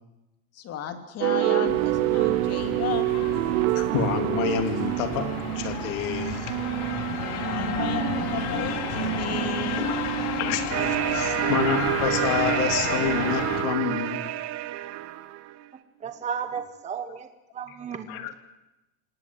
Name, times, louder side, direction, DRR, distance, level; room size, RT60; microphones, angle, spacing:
voice 1, 0.5-3.1 7.4-9.8, left 9 dB, 35° left, 7 dB, 2.9 m, -34 dB
sound 1, 1.2-14.6, right 20 dB, 70° right, 0.8 m, -28 dB
sound 2, 1.6-13.6, left 9 dB, 55° left, 3.2 m, -33 dB
voice 2, 3.7-6.6 9.4-14.2 17.1-17.2 17.7-17.8 18.1-18.4, left 9 dB, 70° left, 7 dB, 3.4 m, -29 dB
sound 3, 10.7-15.5, right 13 dB, 35° right, 1.2 m, -28 dB
voice 3, 16.0-17.3 17.5-18.3, right 7 dB, 15° right, 8 dB, 1.2 m, -33 dB
28.5 x 18.5 x 7.8 m, 0.94 s
supercardioid pair, 150°, 43 cm